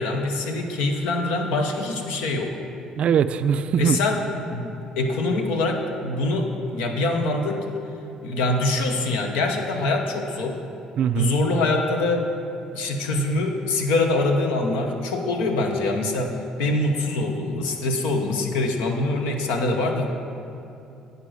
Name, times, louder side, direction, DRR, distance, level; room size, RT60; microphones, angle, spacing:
voice 1, 0.0-2.6 3.8-4.2 4.5-7.7 8.2-10.6 11.1-12.3 12.7-20.1, left 2 dB, 80° left, 3 dB, 1.0 m, -24 dB
voice 2, 3.0-4.0 11.0-11.4, right 7 dB, 55° right, 12 dB, 0.4 m, -21 dB
9.8 x 5.0 x 6.3 m, 2.8 s
supercardioid pair, 70°, 2 cm